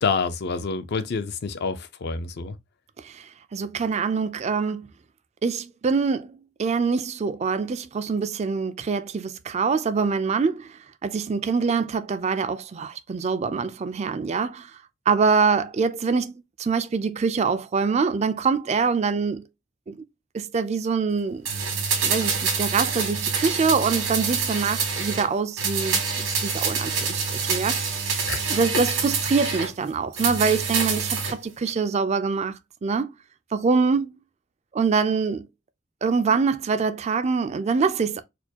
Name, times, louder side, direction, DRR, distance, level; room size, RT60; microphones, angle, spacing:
voice 1, 0.0-2.5 28.3-28.4, left 4 dB, 55° left, 0.5 m, -27 dB
voice 2, 3.0-4.9 5.4-6.3 6.6-14.7 15.1-16.3 16.6-19.4 19.9-20.0 20.3-21.5 22.0-28.0 28.5-33.1 33.5-34.1 34.7-35.5 36.0-38.2, right 5 dB, 35° right, 0.3 m, -24 dB
sound 1, 21.4-25.3 25.6-29.7 30.1-31.4 31.7-31.8, right 5 dB, 85° right, 1.6 m, -26 dB
4.2 x 2.3 x 2.8 m
head